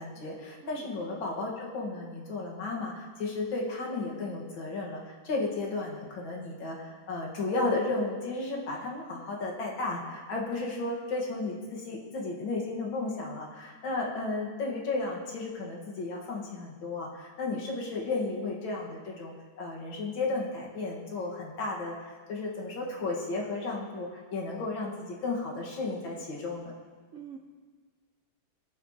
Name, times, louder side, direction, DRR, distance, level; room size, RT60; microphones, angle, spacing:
voice 1, 0.0-26.7, left 3 dB, 75° left, -2 dB, 2.3 m, -34 dB
voice 2, 0.6-0.9 10.8-10.9 13.9-14.0 14.5-14.7 17.4-17.7 27.1-27.4, right 7 dB, 65° right, 2 dB, 0.7 m, -46 dB
20.5 x 7.5 x 2.9 m, 1.5 s
omnidirectional pair, 2.1 m